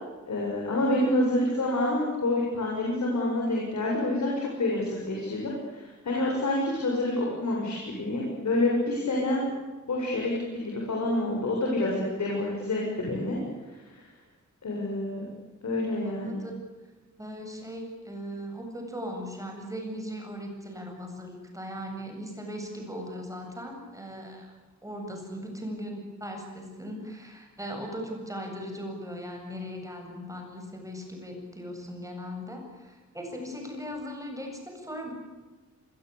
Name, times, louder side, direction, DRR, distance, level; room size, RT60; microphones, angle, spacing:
voice 1, 0.3-9.5 9.9-13.4 14.6-15.2 15.6-16.4, left 1 dB, 65° left, -2 dB, 7.5 m, -28 dB
voice 2, 16.0-16.5 17.2-24.5 24.8-35.1, equal, 10° right, 2 dB, 8.0 m, -38 dB
27.0 x 22.0 x 8.6 m, 1.3 s
wide cardioid pair, 150°, 30 cm